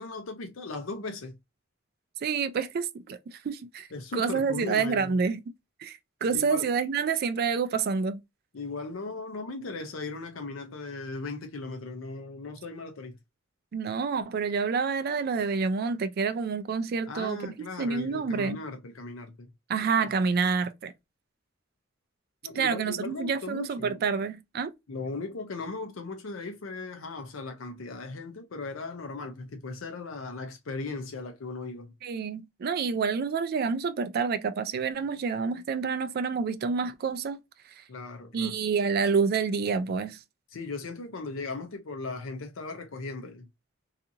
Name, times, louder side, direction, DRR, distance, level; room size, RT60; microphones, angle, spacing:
voice 1, 0.0-1.4 3.9-5.2 6.3-6.7 8.5-13.2 17.1-19.5 20.0-20.1 22.4-24.0 24.9-31.9 37.9-38.5 40.5-43.5, left 3 dB, 80° left, 0.6 m, -37 dB
voice 2, 2.2-3.9 4.1-5.4 5.8-8.2 13.7-18.6 19.7-20.9 22.5-24.7 32.0-37.4 37.8-37.9 38.3-40.2, right 5 dB, 50° right, 0.3 m, -28 dB
2.7 x 2.5 x 2.4 m
head